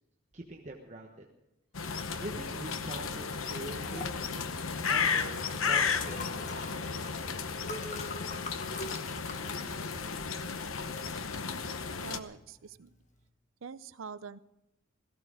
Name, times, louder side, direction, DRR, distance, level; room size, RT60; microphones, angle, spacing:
voice 1, 0.3-1.3 1.9-4.6 4.9-6.6, right 1 dB, 35° right, 0 dB, 1.2 m, -44 dB
sound 1, 1.7-12.2, left 5 dB, 90° left, 0.9 m, -34 dB
Liquid, 3.1-13.2, left 2 dB, 35° left, 1.4 m, -46 dB
voice 2, 12.0-12.9 13.6-14.4, right 5 dB, 85° right, 16 dB, 0.6 m, -44 dB
17.0 x 15.0 x 4.9 m, 0.89 s
head